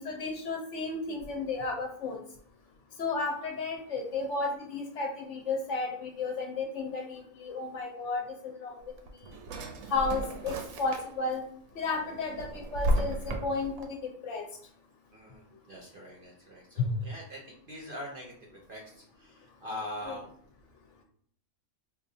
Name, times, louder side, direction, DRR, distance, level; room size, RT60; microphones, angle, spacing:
voice 1, 0.0-2.2 3.0-8.7 9.9-11.4 11.8-14.4 16.8-16.9 20.0-20.2, left 3 dB, 65° left, 2 dB, 0.8 m, -33 dB
Drawer open or close, 8.8-11.4 11.8-13.8, right 1 dB, 80° right, 1.0 m, -33 dB
voice 2, 15.1-20.3, left 1 dB, 55° right, -1 dB, 0.6 m, -43 dB
4.2 x 2.4 x 2.6 m, 0.62 s
omnidirectional pair, 1.5 m